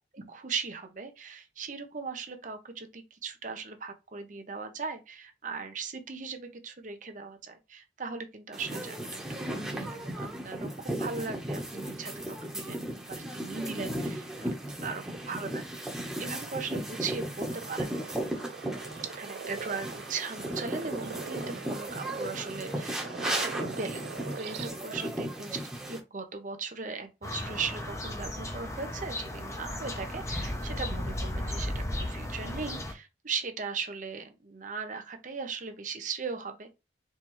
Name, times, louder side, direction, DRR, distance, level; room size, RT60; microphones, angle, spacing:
voice 1, 0.1-14.6 14.8-15.9 16.2-18.2 19.1-36.7, right 5 dB, 45° right, 0.8 m, -38 dB
sound 1, 8.5-26.0, right 1 dB, 5° right, 1.1 m, -36 dB
sound 2, 17.5-24.7, right 5 dB, 65° right, 0.4 m, -42 dB
sound 3, 27.2-32.9, left 1 dB, 15° left, 0.8 m, -35 dB
4.4 x 3.3 x 3.1 m
head